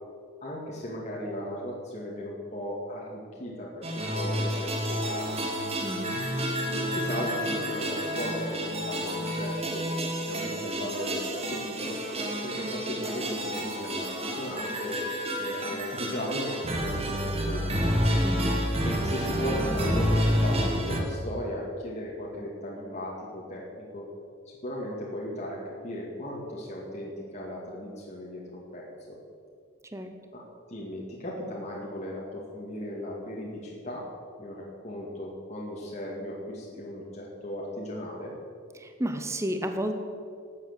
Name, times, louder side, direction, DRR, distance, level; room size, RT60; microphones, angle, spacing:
voice 1, 0.4-5.3 6.7-9.9 10.3-12.0 12.4-15.0 15.4-17.8 18.8-24.1 24.5-29.2 30.3-30.4 30.7-34.1 34.4-38.3, equal, 35° left, -5 dB, 2.2 m, -36 dB
sound 1, 3.8-21.0, equal, 30° right, 1.7 m, -29 dB
voice 2, 5.8-6.2 18.2-18.6 29.9-30.1 38.7-39.9, equal, 15° right, 6 dB, 0.9 m, -31 dB
12.5 x 8.3 x 8.1 m, 2.3 s
head